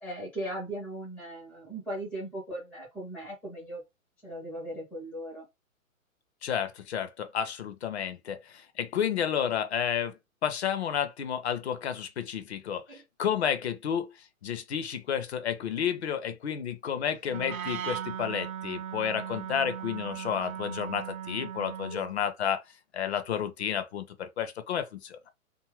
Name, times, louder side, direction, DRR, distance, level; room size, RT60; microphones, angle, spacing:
voice 1, 0.0-3.8 4.2-5.4 12.9-13.0 21.9-22.0, right 1 dB, 5° left, 0.4 m, -38 dB
voice 2, 6.4-14.1 14.4-22.6 22.9-25.2, left 8 dB, 50° left, 0.6 m, -31 dB
Wind instrument woodwind instrument, 17.3-22.1, right 9 dB, 70° right, 0.6 m, -38 dB
2.6 x 2.5 x 3.0 m
figure-of-eight pair, 130°, 42 cm